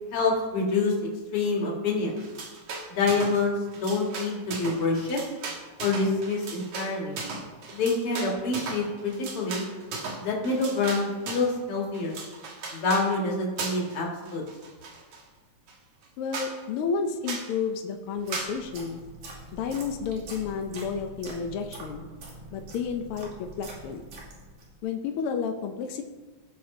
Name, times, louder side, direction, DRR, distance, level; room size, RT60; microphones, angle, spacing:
voice 1, 0.1-2.2 2.9-5.2 5.8-7.2 7.7-9.7 10.2-12.2 12.7-14.4, left 3 dB, 50° left, -1 dB, 2.6 m, -27 dB
sound 1, 2.2-3.4 3.7-11.5 11.9-13.1 13.6-14.0 14.3-15.2 15.7-15.8 16.0-16.1 16.3-16.5 17.3-17.5 18.3-18.5, right 4 dB, 60° right, 2.4 m, -37 dB
voice 2, 16.2-19.0 19.5-22.1 22.5-24.0 24.8-26.0, left 6 dB, 75° left, 4 dB, 1.3 m, -31 dB
sound 2, 18.1-24.8, right 2 dB, 80° right, 3.9 m, -44 dB
17.5 x 6.2 x 3.8 m, 1.3 s
omnidirectional pair, 3.4 m